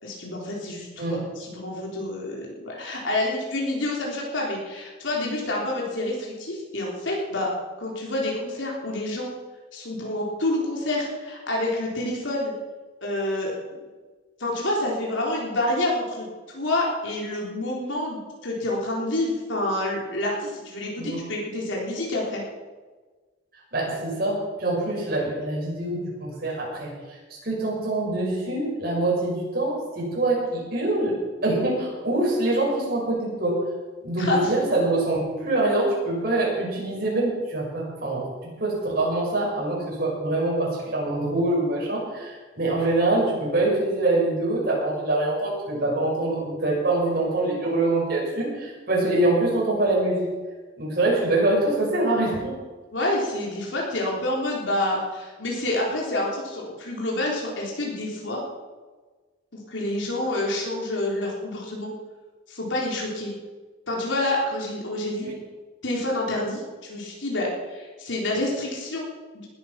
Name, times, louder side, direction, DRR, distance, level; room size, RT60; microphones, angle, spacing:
voice 1, 0.0-7.5 7.8-9.3 9.7-12.5 13.0-13.5 14.4-22.4 34.2-34.5 52.9-58.4 59.7-61.9 62.5-63.3 63.9-65.3 65.8-69.5, left 1 dB, 80° left, -3 dB, 3.7 m, -28 dB
voice 2, 23.7-26.9 27.4-31.1 31.4-33.6 34.0-38.2 38.6-50.3 50.8-52.5 65.2-65.3, right 2 dB, 55° right, -4 dB, 6.5 m, -24 dB
19.5 x 9.6 x 6.0 m, 1.3 s
head